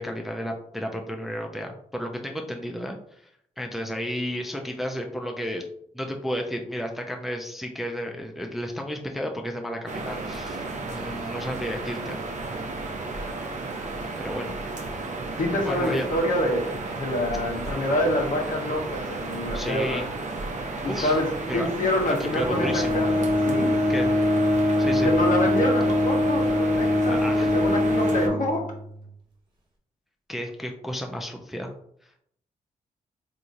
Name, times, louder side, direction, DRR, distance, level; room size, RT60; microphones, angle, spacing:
voice 1, 0.0-3.3 3.6-5.7 5.9-12.2 14.2-14.5 15.6-16.1 19.5-20.1 20.8-21.2 21.5-21.7 22.1-23.1 23.9-24.1 24.8-25.1 27.1-27.5 30.3-31.7, equal, ahead, 2 dB, 0.5 m, -32 dB
sound 1, 9.9-28.3, right 3 dB, 50° right, 0.7 m, -33 dB
voice 2, 15.4-20.0 20.8-23.8 25.0-27.2 27.5-28.6, left 1 dB, 60° left, 0 dB, 1.2 m, -26 dB
Bowed string instrument, 22.4-29.1, left 1 dB, 30° right, 1.3 m, -23 dB
3.5 x 2.9 x 2.6 m, 0.68 s
supercardioid pair, 50°, 16 cm